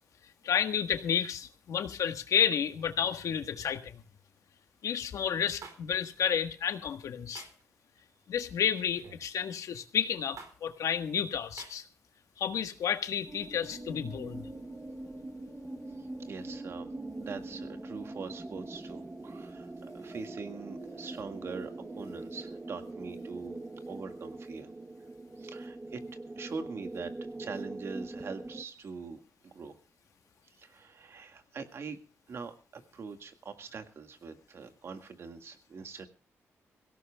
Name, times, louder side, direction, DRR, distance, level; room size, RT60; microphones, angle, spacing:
voice 1, 0.4-4.0 4.8-7.4 8.3-11.8 12.4-14.5, left 8 dB, 85° left, 8 dB, 1.4 m, -31 dB
sound 1, 5.6-5.8 7.3-7.6 8.9-9.2 10.4-10.5 11.6-11.7, right 5 dB, 80° right, 4.3 m, -46 dB
sound 2, 13.3-28.6, right 2 dB, 15° right, 0.9 m, -42 dB
voice 2, 16.2-16.9 17.2-21.7 22.0-24.7 25.4-26.0 26.4-27.1 27.4-29.7 30.5-32.0 32.3-36.1, right 5 dB, 55° right, 7 dB, 1.8 m, -43 dB
23.0 x 17.0 x 2.3 m, 0.38 s
wide cardioid pair, 155°, 5 cm